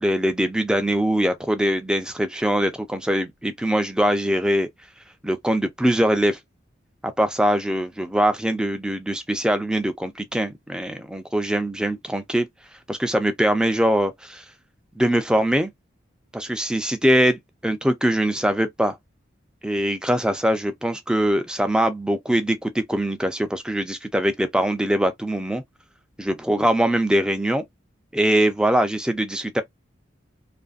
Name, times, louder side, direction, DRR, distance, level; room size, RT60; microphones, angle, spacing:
voice 1, 0.0-4.7 5.2-6.4 7.0-12.5 12.9-14.4 15.0-15.7 16.3-19.0 19.6-25.6 26.2-27.6 28.1-29.6, right 1 dB, 5° right, 0.3 m, -22 dB
2.5 x 2.5 x 2.3 m
head